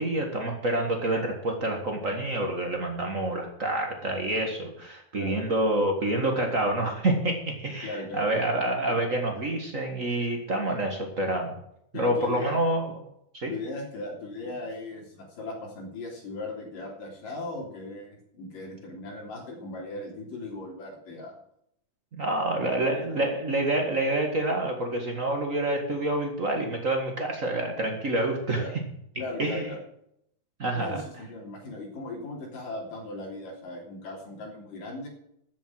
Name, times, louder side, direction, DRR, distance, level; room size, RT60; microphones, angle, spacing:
voice 1, 0.0-11.5 11.9-12.8 13.3-13.5 22.1-28.6 29.4-29.7 30.6-31.0, right 1 dB, 50° right, 3 dB, 0.9 m, -27 dB
voice 2, 7.8-8.2 8.9-9.0 11.9-12.6 13.5-21.4 22.2-23.2 28.6-28.7 29.1-29.8 30.7-35.1, left 2 dB, 60° left, 0 dB, 4.8 m, -38 dB
14.0 x 7.4 x 7.5 m, 0.75 s
omnidirectional pair, 4.5 m